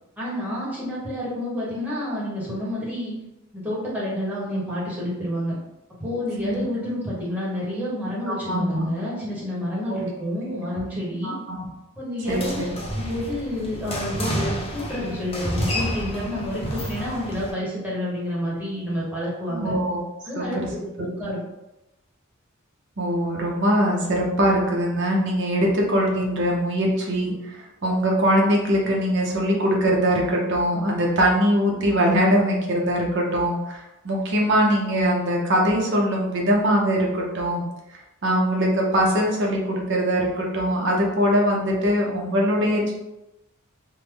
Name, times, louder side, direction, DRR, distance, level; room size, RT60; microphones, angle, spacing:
voice 1, 0.2-3.1 3.5-5.5 6.0-11.3 12.0-12.6 12.9-19.7 20.2-21.4, left 1 dB, 5° right, -8 dB, 1.1 m, -29 dB
voice 2, 8.3-8.9 9.9-10.0 10.5-10.6 11.2-11.6 12.3-12.7 19.5-20.0 20.4-20.7 23.0-37.6 38.2-42.9, equal, 60° right, -1 dB, 0.8 m, -22 dB
sound 1, 12.2-17.5, equal, 30° left, 0.7 m, -30 dB
3.4 x 2.1 x 3.4 m, 0.94 s
head